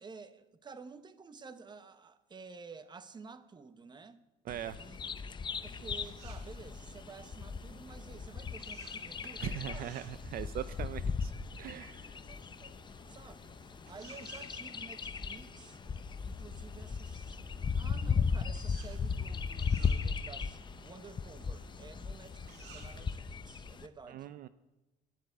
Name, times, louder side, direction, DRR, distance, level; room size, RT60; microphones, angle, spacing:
voice 1, 0.0-4.2 4.8-5.0 5.6-9.9 11.9-12.8 13.1-15.8 16.2-17.4 17.8-24.3, right 4 dB, 25° right, 0.8 m, -52 dB
Bird vocalization bird call bird song, 4.5-23.9, left 5 dB, 25° left, 0.6 m, -37 dB
voice 2, 4.5-4.8 9.4-11.3 11.6-12.2 24.1-24.5, right 12 dB, 60° right, 0.4 m, -41 dB
sound 1, 5.4-23.1, right 6 dB, 85° right, 1.8 m, -59 dB
11.0 x 8.0 x 8.2 m
cardioid pair, 110°, 17 cm